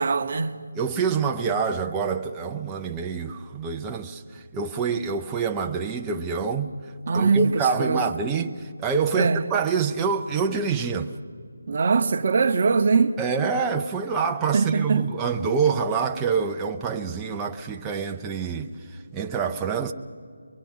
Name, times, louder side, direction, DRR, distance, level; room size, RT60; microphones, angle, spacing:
voice 1, 0.0-0.6 7.1-8.0 9.1-9.4 11.7-13.2 14.5-15.0, right 4 dB, 40° right, 0.9 m, -22 dB
voice 2, 0.8-6.7 7.1-11.1 13.2-18.7 19.1-19.9, right 5 dB, 10° right, 0.6 m, -26 dB
24.0 x 23.0 x 5.6 m
figure-of-eight pair, 170°, 0 cm